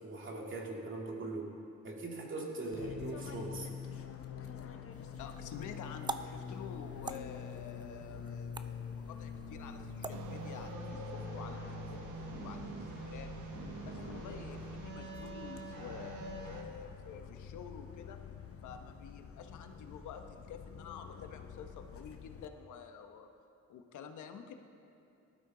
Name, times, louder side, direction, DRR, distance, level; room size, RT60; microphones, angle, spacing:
voice 1, 0.0-1.5 1.8-3.7, right 2 dB, 40° right, 0 dB, 2.4 m, -40 dB
Fixed-wing aircraft airplane, 2.7-22.5, left 7 dB, 50° left, 1.0 m, -46 dB
sound 1, 4.9-10.7, right 3 dB, 15° right, 0.5 m, -47 dB
voice 2, 5.2-11.6 11.9-13.3 13.8-18.2 18.6-23.3 23.7-24.5, left 6 dB, 80° left, 6 dB, 1.1 m, -49 dB
sound 2, 10.1-16.6, right 4 dB, 90° right, 1.4 m, -45 dB
18.5 x 12.5 x 3.9 m, 2.7 s
cardioid pair, 90°, 30 cm